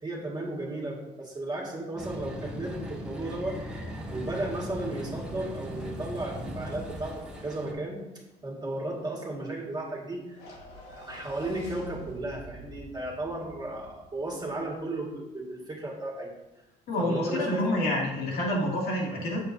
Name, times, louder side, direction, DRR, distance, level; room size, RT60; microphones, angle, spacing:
voice 1, 0.0-3.6 4.1-8.0 8.4-10.4 10.9-16.3 17.0-17.7, right 1 dB, 25° right, -2 dB, 2.0 m, -34 dB
sound 1, 2.0-7.7, equal, 5° right, 1.3 m, -38 dB
sound 2, 10.3-14.8, equal, 85° left, 1.4 m, -47 dB
voice 2, 16.9-19.4, left 1 dB, 70° left, -4 dB, 2.4 m, -28 dB
7.4 x 6.9 x 2.7 m, 0.99 s
cardioid pair, 110°, 17 cm